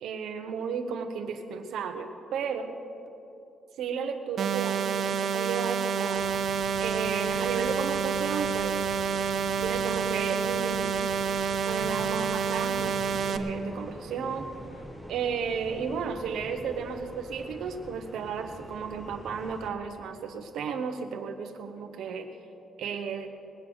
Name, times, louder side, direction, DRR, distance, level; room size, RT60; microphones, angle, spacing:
voice 1, 0.0-2.7 3.8-6.4 6.8-8.8 9.6-11.0 11.7-13.0 13.3-14.5 15.1-22.3 22.8-23.3, right 6 dB, 80° right, 7 dB, 1.1 m, -33 dB
sound 1, 4.4-13.4, right 6 dB, 50° right, 0.7 m, -28 dB
sound 2, 6.1-19.7, right 1 dB, ahead, 1.2 m, -45 dB
20.5 x 8.1 x 6.4 m, 2.8 s
cardioid pair, 145°, 0 cm